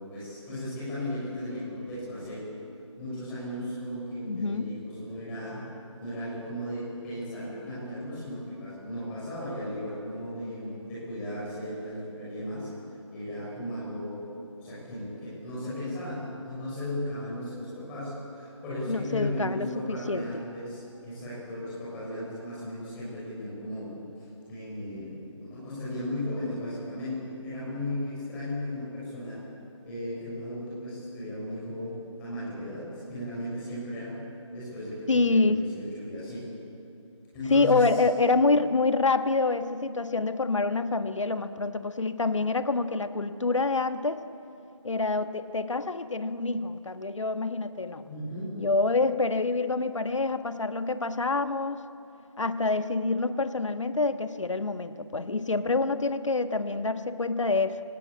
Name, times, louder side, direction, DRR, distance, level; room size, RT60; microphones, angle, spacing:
voice 1, 0.1-2.4 3.0-5.6 6.0-12.7 13.1-14.2 14.6-23.9 24.2-29.4 29.8-31.9 32.2-34.1 34.5-36.4 37.3-38.0 48.1-48.5, left 1 dB, 5° left, -8 dB, 6.2 m, -36 dB
voice 2, 4.2-4.7 18.9-20.4 35.1-35.7 37.5-44.3 44.8-48.1 48.6-51.8 52.4-57.8, left 3 dB, 70° left, 10 dB, 1.4 m, -27 dB
26.0 x 17.0 x 8.6 m, 2.7 s
figure-of-eight pair, 170°, 17 cm